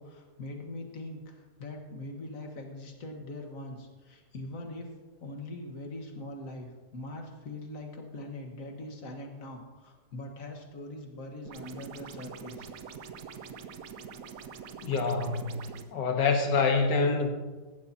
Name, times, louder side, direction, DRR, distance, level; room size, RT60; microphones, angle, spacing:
voice 1, 0.0-4.9 5.2-12.7, left 1 dB, 50° left, 3 dB, 1.8 m, -42 dB
sound 1, 11.5-15.9, right 6 dB, 65° right, 1.0 m, -44 dB
voice 2, 14.8-15.5 15.9-17.3, left 4 dB, 85° left, 4 dB, 2.0 m, -26 dB
16.0 x 11.5 x 2.8 m, 1.3 s
omnidirectional pair, 1.8 m